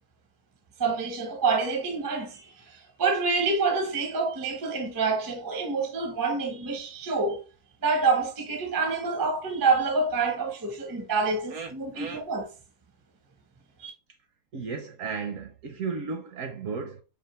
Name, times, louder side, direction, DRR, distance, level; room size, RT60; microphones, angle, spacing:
voice 1, 0.8-7.4 7.8-12.5 13.8-13.9, right 4 dB, 25° right, 0.4 m, -27 dB
voice 2, 11.5-12.3 14.5-17.0, right 5 dB, 65° right, 0.8 m, -35 dB
5.0 x 2.5 x 3.0 m
omnidirectional pair, 1.7 m